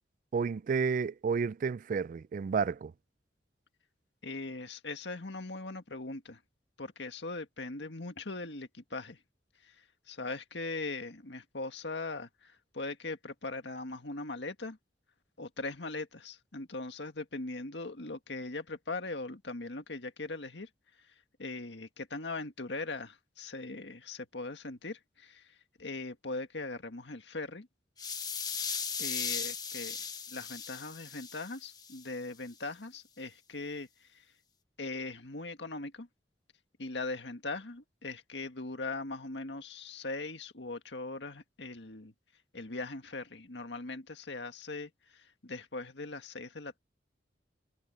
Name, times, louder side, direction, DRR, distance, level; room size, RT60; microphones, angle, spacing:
voice 1, 0.3-2.9, right 5 dB, 50° right, 0.3 m, -31 dB
voice 2, 4.2-6.4 6.8-9.2 9.6-14.8 15.4-20.7 21.1-21.2 21.4-27.7 29.0-30.0 30.3-34.2 34.8-36.1 36.8-42.1 42.5-46.8, left 3 dB, 90° left, 1.8 m, -40 dB
sound 1, 28.0-32.0, left 6 dB, 25° left, 1.1 m, -37 dB
head